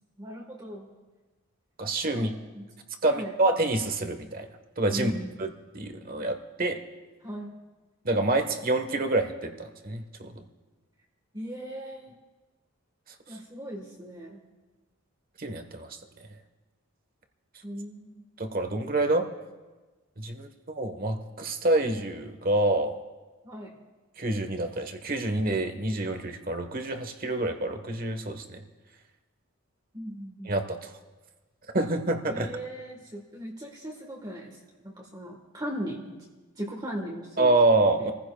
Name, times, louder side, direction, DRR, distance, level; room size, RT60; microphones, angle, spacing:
voice 1, 0.2-0.9 2.1-2.7 3.1-3.3 4.9-5.3 7.2-7.5 11.3-12.2 13.3-14.4 17.6-18.2 23.4-23.7 29.9-30.5 32.3-34.6 34.8-36.2 36.6-37.6 38.0-38.1, equal, 20° right, -1 dB, 1.4 m, -38 dB
voice 2, 1.8-2.3 3.0-4.5 4.8-5.1 5.4-6.8 8.0-10.4 15.4-16.0 18.4-19.3 20.2-20.5 20.7-23.0 24.2-28.6 30.4-30.9 31.7-32.5 37.4-38.1, right 2 dB, 40° right, 6 dB, 1.2 m, -27 dB
29.0 x 15.5 x 2.3 m, 1.2 s
head